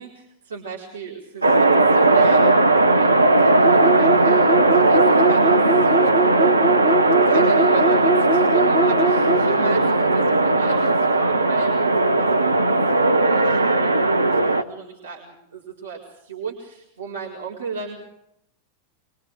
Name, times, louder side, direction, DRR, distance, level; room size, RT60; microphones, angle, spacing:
voice 1, 0.0-7.0 7.2-18.0, right 5 dB, 65° right, -3 dB, 4.7 m, -35 dB
sound 1, 1.4-14.6, right 2 dB, 80° right, 1.0 m, -17 dB
sound 2, 3.6-9.5, right 2 dB, 10° right, 2.7 m, -22 dB
25.0 x 23.5 x 5.0 m, 0.77 s
figure-of-eight pair, 90°, 0 cm